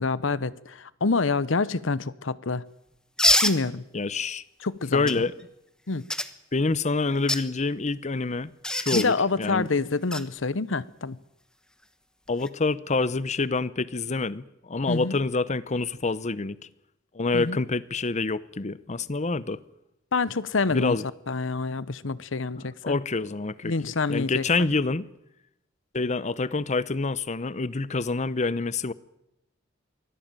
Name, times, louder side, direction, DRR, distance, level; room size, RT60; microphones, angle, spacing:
voice 1, 0.0-2.6 3.4-3.8 4.6-5.1 5.9-6.0 8.9-11.2 14.9-15.2 17.3-17.6 20.1-21.0 21.3-23.0 23.6-24.7, left 4 dB, 75° left, 0.9 m, -27 dB
sound 1, 3.2-3.6 5.1-5.2 6.1-6.3 7.1-7.4 8.6-9.1 10.1-10.2 12.3-12.5, left 1 dB, 5° left, 1.2 m, -23 dB
voice 2, 3.9-4.4 4.9-5.3 6.5-9.7 12.3-16.6 17.1-19.6 20.7-21.0 22.6-23.7 24.1-25.1 25.9-28.9, left 3 dB, 35° left, 0.8 m, -27 dB
24.0 x 17.0 x 9.0 m
head